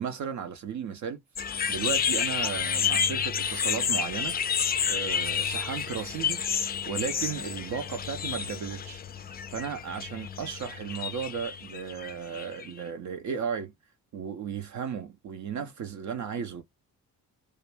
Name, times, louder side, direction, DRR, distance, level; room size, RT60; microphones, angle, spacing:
voice 1, 0.0-6.4 6.9-9.0 9.5-13.7 14.1-16.6, right 7 dB, 35° right, 0.5 m, -35 dB
sound 1, 1.3-12.8, left 7 dB, 20° left, 0.4 m, -30 dB
2.4 x 2.2 x 3.2 m
figure-of-eight pair, 40°, 49 cm